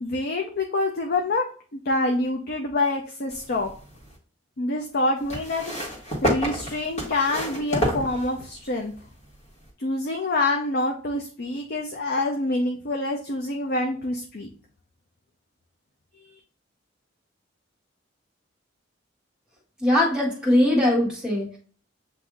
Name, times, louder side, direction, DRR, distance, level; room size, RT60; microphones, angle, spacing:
voice 1, 0.0-1.4 1.7-3.7 4.6-5.6 6.2-8.9 9.8-14.5, left 2 dB, 55° left, 2 dB, 0.6 m, -26 dB
sound 1, 3.3-4.2 5.3-8.7 9.6-9.7, equal, 35° left, 1.5 m, -29 dB
voice 2, 19.8-21.6, left 1 dB, 5° right, -4 dB, 1.4 m, -21 dB
7.7 x 2.7 x 2.4 m, 0.43 s
head